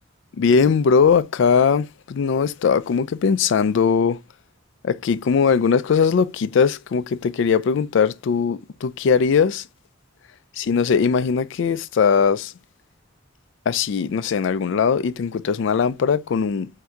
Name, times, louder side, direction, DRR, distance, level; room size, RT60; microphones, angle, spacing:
voice 1, 0.4-4.2 4.8-9.6 10.6-12.5 13.7-16.7, left 6 dB, 60° left, 0.3 m, -20 dB
3.6 x 2.7 x 4.4 m
head